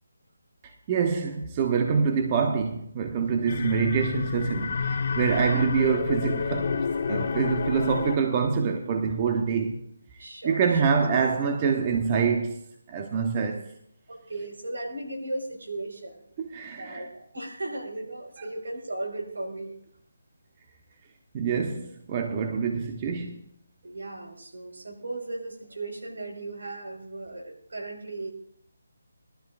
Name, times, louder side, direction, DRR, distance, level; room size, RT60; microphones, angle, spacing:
voice 1, 0.9-9.7 10.4-12.6 12.9-13.6 16.4-17.0 21.3-23.4, right 6 dB, 25° right, 1.0 m, -26 dB
sound 1, 3.5-8.4, left 5 dB, 45° left, 1.0 m, -29 dB
voice 2, 10.2-11.0 13.4-13.6 14.1-16.2 16.5-19.7 23.8-28.3, right 2 dB, 75° right, 4.8 m, -37 dB
21.0 x 12.5 x 2.5 m
figure-of-eight pair, 160°, 0 cm